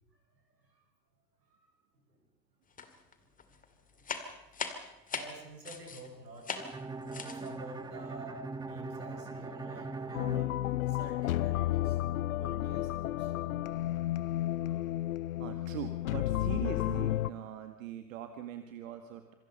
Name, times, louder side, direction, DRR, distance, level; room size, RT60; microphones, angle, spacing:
voice 1, 0.1-0.8 1.5-1.7 1.9-2.2 3.2-4.5 5.0-6.5 6.8-10.5 10.9-12.0 12.4-13.4 14.5-14.8, right 2 dB, 75° right, 3 dB, 6.7 m, -50 dB
sound 1, 2.8-3.1 3.4-6.1 6.4-6.8 7.1-7.5, left 6 dB, 15° left, 2.3 m, -39 dB
Bowed string instrument, 6.5-11.4, right 3 dB, 10° right, 1.3 m, -42 dB
sound 2, 10.1-17.3, left 14 dB, 55° left, 0.8 m, -32 dB
voice 2, 15.4-19.3, right 10 dB, 50° right, 8 dB, 1.9 m, -42 dB
27.0 x 24.5 x 5.5 m, 0.94 s
figure-of-eight pair, 90°, 49 cm